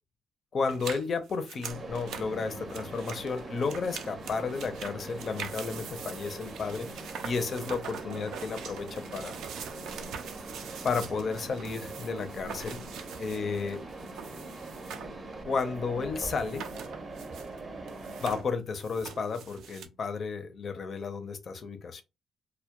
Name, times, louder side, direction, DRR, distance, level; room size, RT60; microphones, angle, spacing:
voice 1, 0.5-6.9 7.2-9.4 10.8-12.8 13.2-13.8 15.4-16.7 18.2-22.0, left 5 dB, 50° left, 0.5 m, -32 dB
sound 1, 0.7-15.2 15.5-15.6 16.3-17.6 17.8-19.9, right 7 dB, 80° right, 0.3 m, -43 dB
Mechanisms, 1.7-18.4, right 2 dB, 35° right, 0.6 m, -42 dB
2.2 x 2.1 x 2.8 m
cardioid pair, 90°, 0 cm